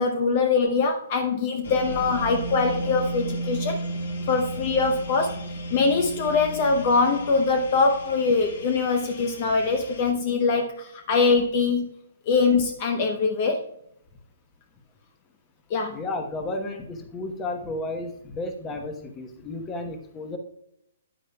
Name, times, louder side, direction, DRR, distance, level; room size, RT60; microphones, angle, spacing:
voice 1, 0.0-3.8 4.3-5.4 5.7-11.9 12.3-13.6 15.7-16.0, left 4 dB, 40° left, 5 dB, 0.7 m, -23 dB
sound 1, 1.6-10.1, right 1 dB, 70° left, 1.6 m, -34 dB
voice 2, 15.9-20.4, left 2 dB, 20° left, 5 dB, 1.0 m, -33 dB
9.4 x 8.8 x 2.3 m, 0.76 s
hypercardioid pair, 155°, 0 cm